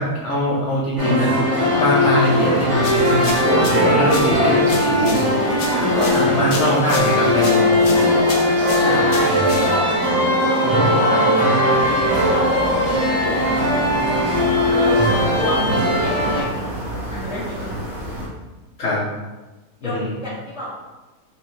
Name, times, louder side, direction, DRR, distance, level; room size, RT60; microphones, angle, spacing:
voice 1, 0.0-5.3 5.8-8.2 8.8-9.1 10.6-11.0 18.8-19.0 19.8-20.1, left 1 dB, 55° left, -6 dB, 1.1 m, -22 dB
sound 1, 1.0-16.4, left 1 dB, 65° right, 2.2 m, -18 dB
sound 2, 2.8-10.0, left 3 dB, 70° left, 0.6 m, -33 dB
voice 2, 9.1-9.6 10.0-11.2 12.0-13.8 14.7-17.7 19.8-20.7, left 1 dB, 5° right, -8 dB, 0.9 m, -30 dB
sound 3, 11.7-18.3, equal, 45° right, 1.5 m, -31 dB
4.5 x 3.2 x 3.0 m, 1.1 s
omnidirectional pair, 1.7 m